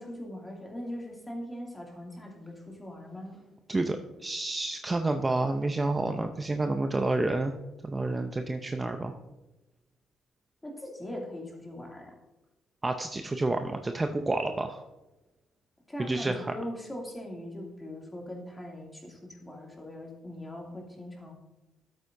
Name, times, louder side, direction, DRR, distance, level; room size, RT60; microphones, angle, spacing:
voice 1, 0.0-3.4 10.6-12.1 15.9-21.3, left 1 dB, 15° left, -1 dB, 2.6 m, -40 dB
voice 2, 3.7-7.6 7.8-9.2 12.8-14.8 16.0-16.5, right 2 dB, 20° right, 6 dB, 0.6 m, -29 dB
12.0 x 8.3 x 2.7 m, 1.0 s
cardioid pair, 90°, 0 cm